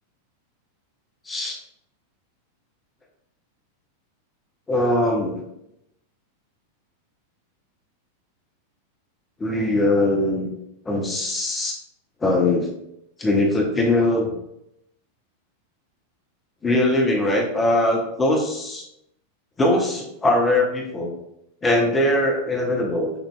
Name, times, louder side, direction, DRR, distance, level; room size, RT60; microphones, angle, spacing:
voice 1, 1.3-1.6 4.7-5.5 9.4-10.5 10.9-11.7 12.2-12.7 13.2-14.3 16.6-18.8 19.6-21.1 21.6-23.1, left 1 dB, 15° left, 0 dB, 0.8 m, -21 dB
6.6 x 2.7 x 2.2 m, 0.81 s
figure-of-eight pair, 90°, 0 cm